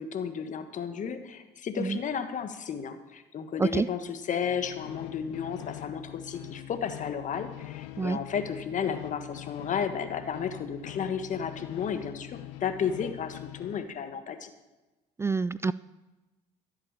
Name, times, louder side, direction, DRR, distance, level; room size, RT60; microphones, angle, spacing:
voice 1, 0.0-14.5, left 7 dB, 55° left, 9 dB, 1.5 m, -33 dB
sound 1, 4.3-13.9, left 15 dB, 85° left, 0.6 m, -43 dB
voice 2, 15.2-15.7, right 4 dB, 15° right, 18 dB, 0.3 m, -27 dB
13.5 x 8.3 x 6.8 m, 1.1 s
hypercardioid pair, 65°, 16 cm